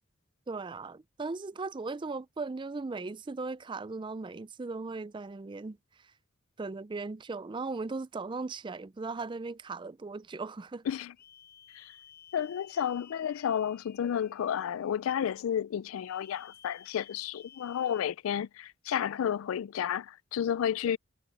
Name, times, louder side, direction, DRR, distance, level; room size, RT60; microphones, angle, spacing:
voice 1, 0.5-6.1 6.6-10.9, right 3 dB, 20° right, 0.4 m, -38 dB
sound 1, 11.2-15.0 16.0-18.1, left 9 dB, 50° left, 6.5 m, -55 dB
voice 2, 12.3-21.0, left 9 dB, 75° left, 0.3 m, -31 dB
head